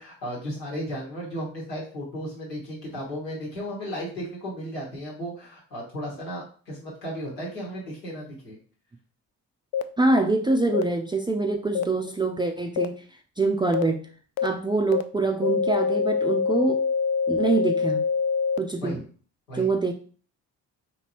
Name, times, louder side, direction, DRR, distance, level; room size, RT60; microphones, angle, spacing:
voice 1, 0.0-8.6 18.8-19.0 19.5-19.7, equal, 85° left, -4 dB, 1.3 m, -35 dB
sound 1, 9.7-9.8 10.7-10.8 11.7-11.8 12.8-12.9 13.7-13.8 14.4-14.5 14.9-15.0 15.4-18.6, left 6 dB, 50° left, 0.5 m, -24 dB
voice 2, 10.0-13.0 13.4-14.0 14.4-16.8 17.3-18.1 18.6-19.0 19.6-19.9, right 3 dB, 10° right, 3 dB, 0.4 m, -24 dB
4.2 x 2.9 x 2.9 m, 0.41 s
figure-of-eight pair, 40°, 48 cm